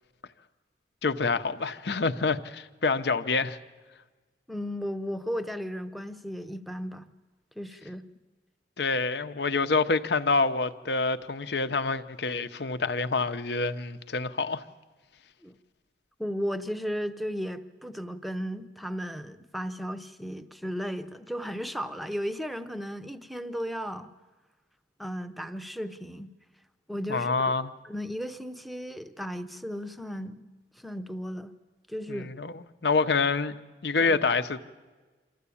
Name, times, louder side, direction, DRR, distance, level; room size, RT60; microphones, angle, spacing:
voice 1, 1.0-3.6 8.8-14.6 27.1-27.7 32.1-33.5 33.8-34.6, left 4 dB, 70° left, 0.8 m, -27 dB
voice 2, 4.5-7.1 7.6-8.0 15.4-15.5 16.2-24.1 25.0-26.3 26.9-27.5 27.8-30.5 30.8-31.5 31.9-32.3 34.0-34.2, equal, ahead, 0.7 m, -35 dB
25.5 x 13.5 x 8.5 m
head